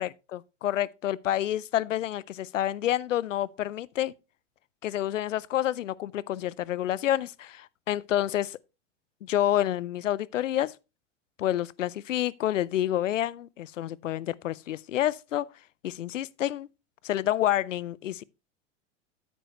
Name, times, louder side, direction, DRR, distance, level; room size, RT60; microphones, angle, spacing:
voice 1, 0.0-4.1 4.8-8.6 9.2-10.7 11.4-15.5 15.8-16.7 17.0-18.2, left 12 dB, 90° left, 0.6 m, -28 dB
9.2 x 9.0 x 3.0 m
hypercardioid pair, 95°, 37 cm